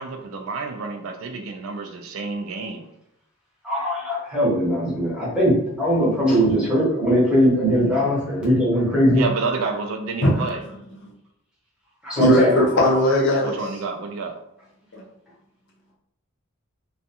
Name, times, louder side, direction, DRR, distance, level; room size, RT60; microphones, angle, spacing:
voice 1, 0.0-2.9 9.1-10.6 13.4-14.3, right 4 dB, 65° right, 4 dB, 0.4 m, -29 dB
voice 2, 3.6-9.3 12.0-12.5, equal, 5° right, -7 dB, 0.9 m, -20 dB
voice 3, 12.2-13.5 14.9-15.0, equal, 50° left, -3 dB, 0.6 m, -18 dB
2.5 x 2.3 x 2.7 m, 0.80 s
head